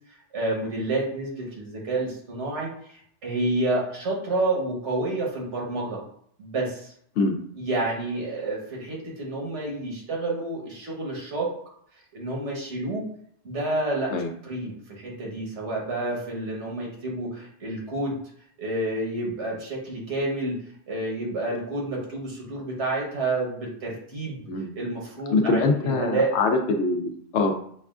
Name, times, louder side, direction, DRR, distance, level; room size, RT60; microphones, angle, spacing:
voice 1, 0.1-6.0 6.4-6.9 7.5-11.5 12.1-13.1 13.4-14.1 14.4-18.2 18.6-20.6 20.9-24.4 24.7-26.4, right 2 dB, 85° right, -3 dB, 1.5 m, -29 dB
voice 2, 25.3-27.5, left 3 dB, 80° left, 4 dB, 0.9 m, -23 dB
6.0 x 2.3 x 2.4 m, 0.65 s
omnidirectional pair, 1.2 m